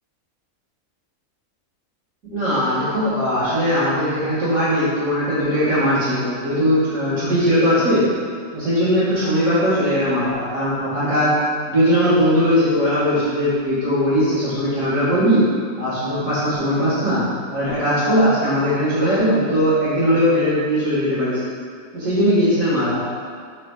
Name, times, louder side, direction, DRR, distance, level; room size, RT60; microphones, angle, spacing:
voice 1, 2.3-8.0 8.5-11.3 11.7-15.4 15.8-21.4 21.9-23.0, equal, 70° right, -14 dB, 1.8 m, -19 dB
5.3 x 4.1 x 2.3 m, 2.1 s
omnidirectional pair, 1.5 m